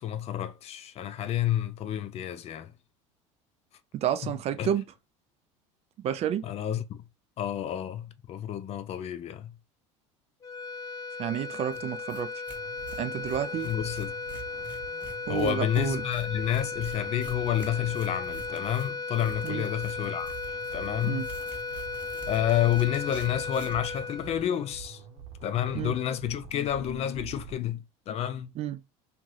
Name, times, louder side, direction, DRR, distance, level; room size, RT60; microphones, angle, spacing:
voice 1, 0.0-2.7 4.6-4.7 6.4-7.0 7.4-9.5 13.6-14.1 15.3-21.3 22.3-25.0 25.4-28.5, left 11 dB, 40° left, 0.4 m, -30 dB
voice 2, 3.9-4.9 6.0-6.5 11.2-12.3 13.0-13.7 15.3-16.0 19.4-19.7 21.0-21.3 25.7-26.0 28.6-28.8, right 10 dB, 40° right, 0.3 m, -30 dB
sound 1, 10.4-25.0, left 4 dB, 20° left, 1.0 m, -36 dB
Tearing, 11.7-11.8 12.1-12.2 12.5-23.9, right 1 dB, 10° right, 1.1 m, -49 dB
sound 2, 12.5-27.6, right 8 dB, 60° right, 0.9 m, -47 dB
2.7 x 2.5 x 3.1 m
hypercardioid pair, 85°, 16 cm